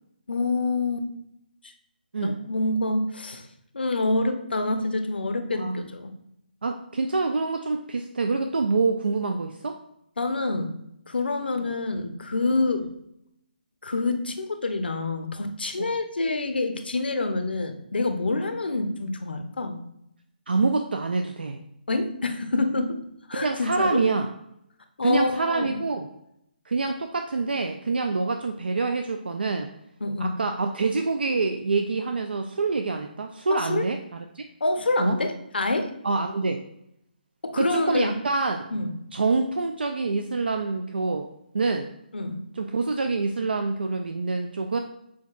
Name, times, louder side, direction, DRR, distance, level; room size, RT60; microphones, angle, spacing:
voice 1, 0.3-1.1 1.6-1.7 2.2-3.5 3.7-6.1 10.2-10.7 11.1-12.9 13.8-19.8 21.9-23.0 23.3-24.1 25.0-25.8 30.0-30.4 33.5-33.9 34.6-35.9 37.4-38.1 38.7-38.9 42.1-42.4, left 2 dB, 85° left, 7 dB, 0.6 m, -27 dB
voice 2, 5.5-5.8 6.6-9.8 11.6-11.7 15.8-15.9 20.5-21.6 23.3-24.3 25.0-26.1 26.7-29.7 30.2-34.0 34.4-34.5 35.0-35.2 36.0-36.6 37.6-38.7 39.1-41.3 41.5-41.9 42.6-44.8, right 3 dB, 85° right, 5 dB, 0.4 m, -26 dB
6.3 x 2.8 x 2.3 m, 0.79 s
hypercardioid pair, 155°, 5 cm